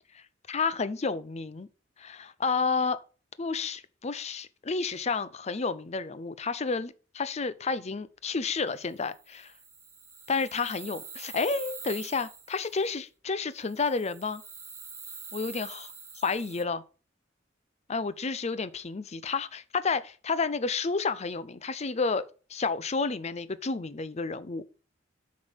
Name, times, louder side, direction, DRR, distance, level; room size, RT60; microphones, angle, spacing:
voice 1, 0.5-1.7 2.0-3.0 3.4-9.5 10.3-14.4 15.3-16.8 17.9-22.2 22.5-24.6, left 4 dB, 35° left, 0.6 m, -31 dB
sound 1, 9.0-12.9 13.6-16.6, right 5 dB, 15° right, 1.1 m, -45 dB
8.1 x 5.3 x 5.2 m
head